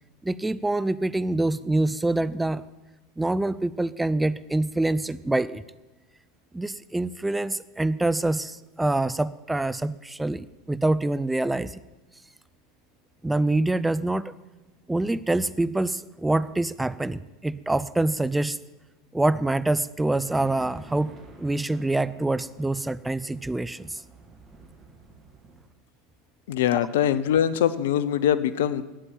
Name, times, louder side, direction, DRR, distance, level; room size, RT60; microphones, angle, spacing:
voice 1, 0.2-2.7 3.2-5.6 6.5-11.8 13.2-14.3 14.9-18.6 19.1-24.0, right 2 dB, 10° right, 16 dB, 0.5 m, -25 dB
sound 1, 20.3-25.7, right 3 dB, 30° right, 2.7 m, -50 dB
voice 2, 26.5-28.8, left 10 dB, 70° left, 15 dB, 0.8 m, -23 dB
12.5 x 9.0 x 8.7 m, 1.1 s
hypercardioid pair, 85°, 0 cm